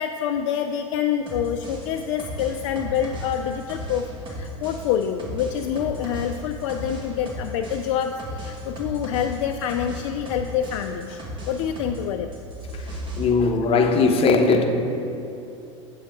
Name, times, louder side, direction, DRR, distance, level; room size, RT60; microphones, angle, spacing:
voice 1, 0.0-12.3, left 9 dB, 60° left, 5 dB, 0.4 m, -27 dB
sound 1, 1.3-12.0 12.3-13.3, equal, 30° right, 1.6 m, -35 dB
voice 2, 13.2-14.7, left 4 dB, 35° left, 5 dB, 0.8 m, -19 dB
8.3 x 7.2 x 3.6 m, 2.9 s
hypercardioid pair, 85°, 16 cm